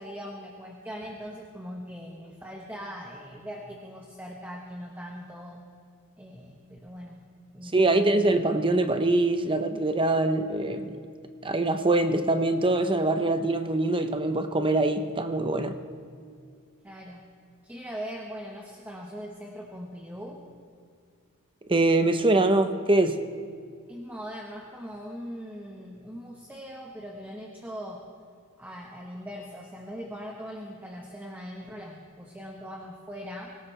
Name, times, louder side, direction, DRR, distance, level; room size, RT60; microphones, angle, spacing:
voice 1, 0.0-5.6 6.2-7.2 7.5-8.3 16.8-17.2 17.6-20.4 23.9-28.0 28.6-33.6, equal, 10° right, 0 dB, 1.2 m, -40 dB
voice 2, 7.7-11.0 11.4-15.8 21.7-23.2, right 2 dB, 25° right, 8 dB, 0.8 m, -23 dB
25.0 x 17.5 x 3.4 m, 2.2 s
head